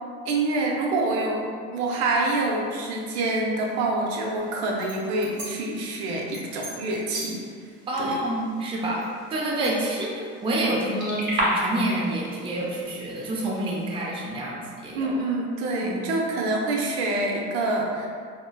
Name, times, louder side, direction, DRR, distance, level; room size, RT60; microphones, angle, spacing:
voice 1, 0.3-7.4 8.0-8.2 14.9-18.1, right 2 dB, 75° right, -1 dB, 0.6 m, -26 dB
sound 1, 4.4-14.1, right 1 dB, 40° right, 1.2 m, -35 dB
voice 2, 7.9-9.0 9.3-15.1 15.8-16.0, right 1 dB, 20° right, -4 dB, 0.5 m, -28 dB
3.7 x 2.1 x 2.2 m, 2.1 s
supercardioid pair, 110°, 30 cm